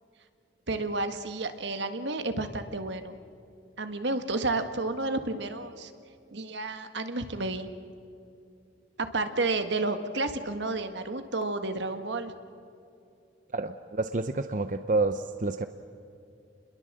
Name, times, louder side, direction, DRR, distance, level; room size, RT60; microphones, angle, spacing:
voice 1, 0.7-3.2 3.8-5.9 6.3-7.7 9.0-12.3, right 2 dB, 75° right, 8 dB, 1.8 m, -31 dB
voice 2, 13.5-15.7, right 3 dB, 45° right, 9 dB, 0.7 m, -29 dB
30.0 x 22.0 x 7.6 m, 2.6 s
head